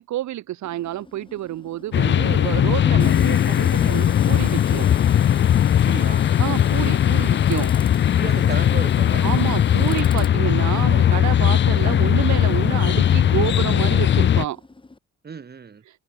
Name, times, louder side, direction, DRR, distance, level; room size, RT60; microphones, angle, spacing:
voice 1, 0.0-4.9 6.4-7.7 9.2-14.6, right 14 dB, 70° right, 0.9 m, -28 dB
Tools, 0.6-15.0, left 3 dB, 15° left, 2.5 m, -44 dB
sound 1, 1.9-14.5, left 10 dB, 40° left, 0.5 m, -18 dB
voice 2, 5.8-6.3 8.2-9.3 10.9-11.1 15.2-15.8, right 6 dB, 35° right, 1.7 m, -34 dB
cardioid pair, 90°, 30 cm